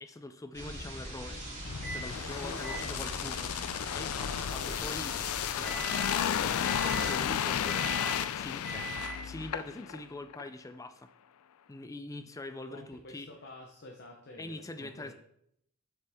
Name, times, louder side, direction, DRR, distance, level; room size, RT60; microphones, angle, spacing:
voice 1, 0.0-1.4 1.8-11.1 11.7-13.3 14.4-15.1, left 2 dB, 15° left, 9 dB, 0.4 m, -44 dB
sound 1, 0.5-7.1, right 1 dB, 30° right, 2.8 m, -42 dB
sound 2, 1.6-10.0 10.3-10.5, left 9 dB, 80° left, 0.4 m, -33 dB
Microwave oven, 1.8-2.1 2.6-9.5, right 4 dB, 50° right, 2.0 m, -44 dB
voice 2, 2.1-3.4 12.2-12.3 12.7-15.1, left 1 dB, 50° left, 0 dB, 0.9 m, -49 dB
7.5 x 5.7 x 3.6 m, 0.72 s
head